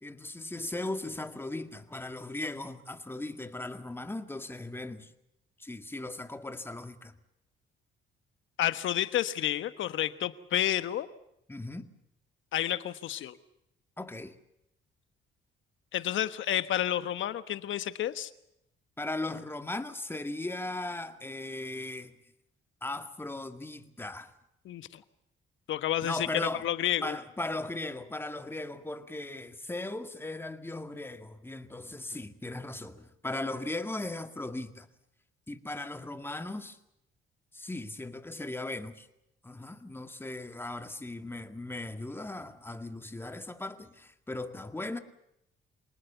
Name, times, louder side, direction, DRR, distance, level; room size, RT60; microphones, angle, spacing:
voice 1, 0.0-5.1 5.6-7.2 11.5-11.9 14.0-14.4 19.0-22.2 22.8-24.3 26.0-26.6 27.0-34.9 35.5-36.8 37.5-39.1 39.4-45.0, left 2 dB, 10° left, 2.1 m, -38 dB
voice 2, 8.6-11.1 12.5-13.4 15.9-18.3 24.6-25.0 25.7-26.3 26.6-27.2, left 12 dB, 75° left, 1.3 m, -30 dB
27.0 x 19.0 x 7.0 m
cardioid pair, 90°, 20 cm